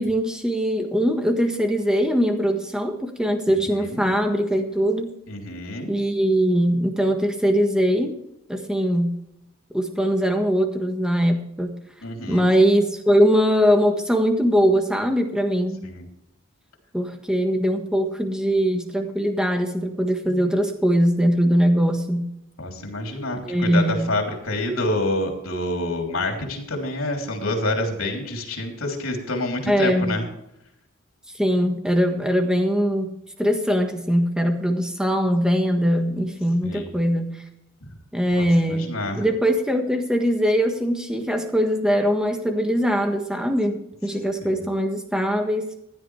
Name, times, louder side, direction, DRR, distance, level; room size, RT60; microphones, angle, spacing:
voice 1, 0.0-5.2 5.9-8.2 8.5-9.1 9.7-11.7 12.3-15.8 16.9-22.2 23.4-24.1 29.6-30.2 31.4-33.1 33.4-37.4 38.1-45.7, equal, 5° right, 5 dB, 1.5 m, -21 dB
voice 2, 3.5-4.0 5.3-5.9 12.0-12.5 15.8-16.1 22.6-30.3 36.6-36.9 38.3-39.2 44.4-44.6, left 1 dB, 80° left, 2 dB, 3.4 m, -28 dB
16.0 x 11.0 x 3.4 m, 0.79 s
head